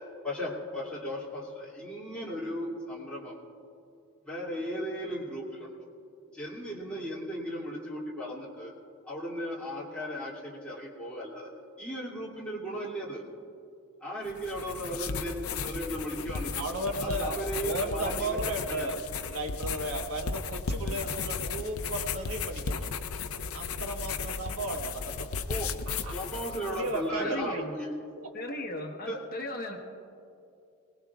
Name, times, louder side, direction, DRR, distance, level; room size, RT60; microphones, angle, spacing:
voice 1, 0.2-3.4 4.3-5.9 6.3-8.7 9.1-11.5 11.8-13.2 14.0-16.6 17.0-18.9 20.9-21.1 25.5-25.7 26.1-27.9 29.1-29.2, equal, 5° left, -6 dB, 2.5 m, -36 dB
sound 1, 14.3-27.0, left 5 dB, 75° left, 0.6 m, -35 dB
voice 2, 16.5-19.0 19.2-22.9 23.5-25.3 26.0-26.2 26.7-27.6 28.2-28.3, right 2 dB, 75° right, 3 dB, 1.3 m, -34 dB
voice 3, 27.2-27.7 28.3-29.8, left 1 dB, 40° left, 1 dB, 1.3 m, -37 dB
23.0 x 19.5 x 2.4 m, 2.5 s
head